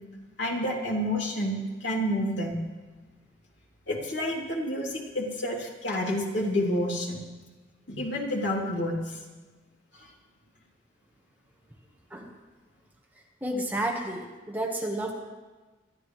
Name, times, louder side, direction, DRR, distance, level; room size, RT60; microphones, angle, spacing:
voice 1, 0.4-2.6 3.9-7.2 7.9-9.2 9.9-10.1, left 1 dB, 75° left, -2 dB, 2.9 m, -29 dB
voice 2, 13.4-15.1, right 1 dB, 10° right, 0 dB, 1.3 m, -31 dB
25.5 x 12.0 x 3.2 m, 1.3 s
head